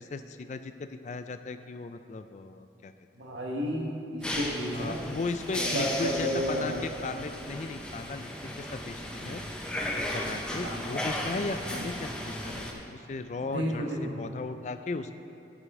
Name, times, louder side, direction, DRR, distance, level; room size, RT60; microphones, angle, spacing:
voice 1, 0.0-2.9 4.7-9.4 9.9-15.1, left 3 dB, 40° left, 10 dB, 0.3 m, -36 dB
voice 2, 3.1-5.0 5.6-6.8 10.6-10.8 11.7-11.9 13.5-14.1, equal, 85° right, -2 dB, 1.4 m, -31 dB
sound 1, 4.2-12.7, left 1 dB, 5° left, 0.6 m, -35 dB
14.0 x 5.1 x 3.6 m, 2.6 s
head